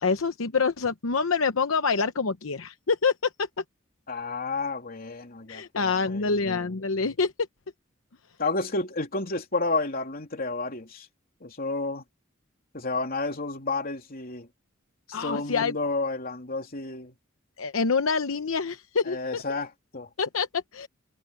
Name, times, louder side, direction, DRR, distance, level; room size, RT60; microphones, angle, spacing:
voice 1, 0.0-3.5 5.5-7.3 15.1-15.7 17.6-19.4 20.2-20.9, left 5 dB, 80° left, 0.9 m, -26 dB
voice 2, 4.1-6.7 8.4-11.1 11.4-12.0 12.7-14.5 15.1-17.1 19.1-20.1, left 3 dB, 45° left, 3.1 m, -31 dB
head